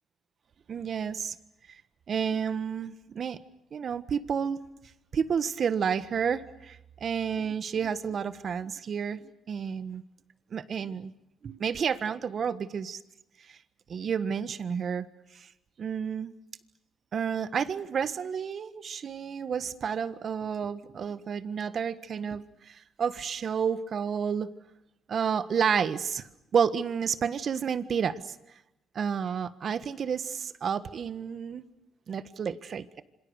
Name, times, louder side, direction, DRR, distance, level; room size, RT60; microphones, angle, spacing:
voice 1, 0.7-1.4 1.7-1.8 2.1-3.4 3.7-4.6 5.1-10.0 10.5-11.1 11.4-13.0 13.5-13.6 13.9-15.0 15.3-15.5 15.8-16.3 17.1-24.5 25.1-28.4 28.9-31.6 32.1-33.0, right 7 dB, 55° right, 14 dB, 1.5 m, -30 dB
27.5 x 25.5 x 6.5 m, 0.87 s
cardioid pair, 90°, 0 cm